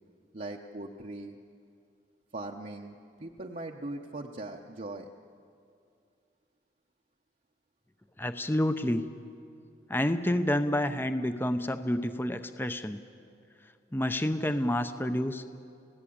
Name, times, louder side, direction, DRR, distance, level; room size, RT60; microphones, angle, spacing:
voice 1, 0.3-1.4 2.3-5.1, right 2 dB, 40° right, 1 dB, 0.9 m, -40 dB
voice 2, 8.2-9.1 9.9-13.0 13.9-15.4, left 1 dB, 10° left, 9 dB, 0.7 m, -29 dB
30.0 x 17.0 x 8.7 m, 2.5 s
head